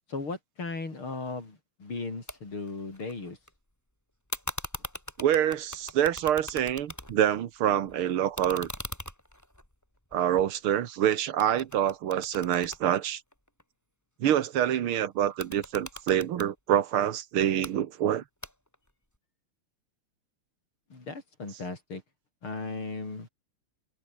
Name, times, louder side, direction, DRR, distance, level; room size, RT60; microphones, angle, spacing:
voice 1, 0.1-3.4 20.9-22.0 22.4-23.3, left 3 dB, 80° left, 6.3 m, -37 dB
sound 1, 2.3-2.4 2.7-3.5 4.3-7.4 7.7-11.0 11.4-13.6 15.2-16.5 17.4-17.7 18.4-18.9, equal, 5° left, 5.2 m, -41 dB
voice 2, 5.2-8.7 10.1-13.2 14.2-18.2, right 10 dB, 90° right, 2.1 m, -26 dB
omnidirectional pair, 2.3 m